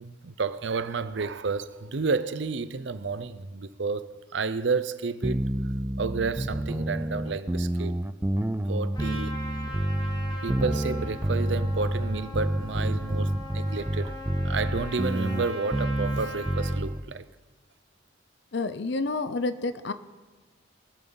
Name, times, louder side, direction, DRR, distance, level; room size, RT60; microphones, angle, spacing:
voice 1, 0.0-5.5 6.0-8.0 8.7-9.4 10.4-14.1 14.4-17.2, right 4 dB, 60° right, 0.6 m, -31 dB
sound 1, 5.2-17.0, right 1 dB, 10° right, 0.3 m, -28 dB
Trumpet, 8.9-16.8, left 1 dB, 20° left, 1.4 m, -41 dB
voice 2, 18.5-19.9, left 3 dB, 60° left, 0.6 m, -29 dB
22.5 x 7.9 x 3.9 m
head